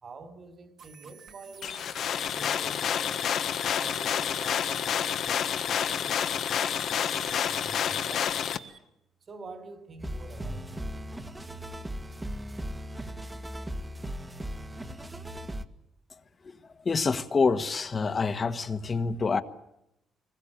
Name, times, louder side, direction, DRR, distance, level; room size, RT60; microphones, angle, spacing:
voice 1, 0.0-1.9 2.3-3.3 3.8-6.6 7.1-8.4 9.3-10.8, right 3 dB, 45° right, 3.7 m, -46 dB
sound 1, 0.8-8.8, right 7 dB, 65° right, 2.9 m, -51 dB
sound 2, 1.6-8.6, left 9 dB, 70° left, 1.4 m, -29 dB
sound 3, 10.0-15.6, equal, 15° right, 1.7 m, -37 dB
voice 2, 16.8-19.4, left 4 dB, 35° left, 1.5 m, -27 dB
24.5 x 21.5 x 9.0 m
cardioid pair, 90°, 0 cm